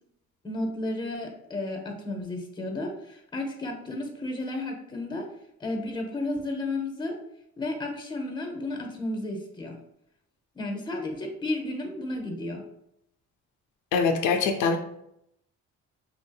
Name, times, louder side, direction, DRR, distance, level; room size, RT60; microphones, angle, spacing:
voice 1, 0.4-5.3 5.6-7.2 7.6-9.8 10.5-12.6, left 2 dB, 15° left, 3 dB, 0.6 m, -33 dB
voice 2, 13.9-14.8, left 5 dB, 80° left, 6 dB, 0.5 m, -23 dB
3.1 x 2.7 x 2.2 m, 0.76 s
cardioid pair, 90°, 30 cm